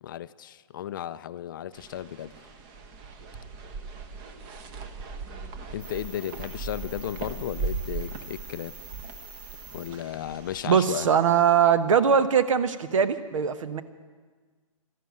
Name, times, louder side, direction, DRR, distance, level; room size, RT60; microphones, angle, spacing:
voice 1, 0.0-2.4 5.7-8.8 9.7-11.1, left 11 dB, 40° left, 15 dB, 0.4 m, -35 dB
sound 1, 1.7-10.7, right 4 dB, 30° right, 1.1 m, -38 dB
sound 2, 5.8-11.5, right 2 dB, 10° right, 2.3 m, -48 dB
voice 2, 10.6-13.8, right 7 dB, 70° right, 12 dB, 1.1 m, -21 dB
13.5 x 11.5 x 9.4 m, 1.5 s
hypercardioid pair, 150°, 17 cm